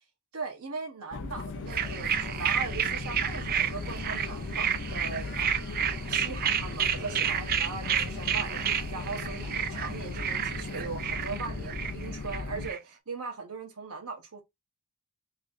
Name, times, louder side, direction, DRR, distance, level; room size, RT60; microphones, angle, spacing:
voice 1, 0.3-5.6 6.1-14.4, right 4 dB, 80° right, 1.1 m, -39 dB
sound 1, 1.1-12.7, left 3 dB, 55° left, 0.5 m, -38 dB
sound 2, 1.7-12.8, right 9 dB, 45° right, 0.4 m, -31 dB
sound 3, 1.8-11.9, equal, 65° right, 1.7 m, -47 dB
3.1 x 2.6 x 3.9 m
head